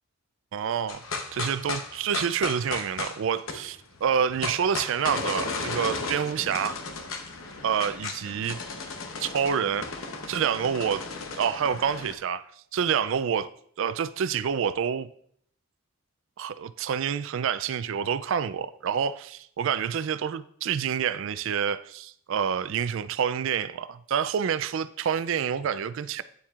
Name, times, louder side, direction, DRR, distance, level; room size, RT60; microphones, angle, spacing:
voice 1, 0.5-1.0 1.3-6.8 7.6-8.6 9.2-9.9 10.3-11.0 11.4-13.5 13.8-15.1 16.4-26.2, right 7 dB, 65° right, 15 dB, 0.3 m, -28 dB
sound 1, 0.9-12.1, left 4 dB, 75° left, 0.9 m, -35 dB
9.2 x 7.1 x 2.4 m, 0.66 s
head